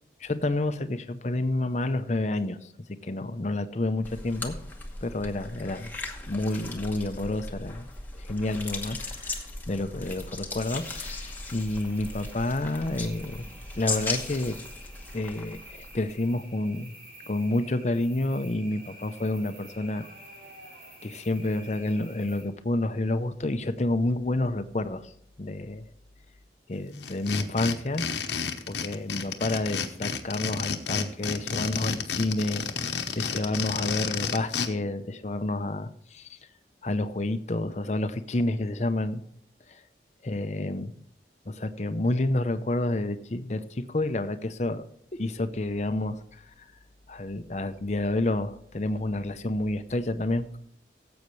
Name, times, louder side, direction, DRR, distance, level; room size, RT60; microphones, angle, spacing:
voice 1, 0.2-2.6 3.0-4.5 5.0-5.9 6.3-7.9 8.1-13.5 13.8-14.6 15.1-16.9 17.3-20.0 21.0-25.1 25.4-25.8 26.7-28.0 28.7-32.6 33.2-36.3 36.8-39.2 40.2-40.9 41.5-44.8 45.2-46.4 47.1-50.6, left 2 dB, 40° left, 10 dB, 0.6 m, -29 dB
sound 1, 4.0-16.2, left 2 dB, 10° left, 1.1 m, -37 dB
sound 2, 10.6-22.4, right 1 dB, 65° right, 5.4 m, -50 dB
sound 3, 27.0-34.7, left 6 dB, 85° left, 1.0 m, -31 dB
17.0 x 8.0 x 3.2 m, 0.67 s
head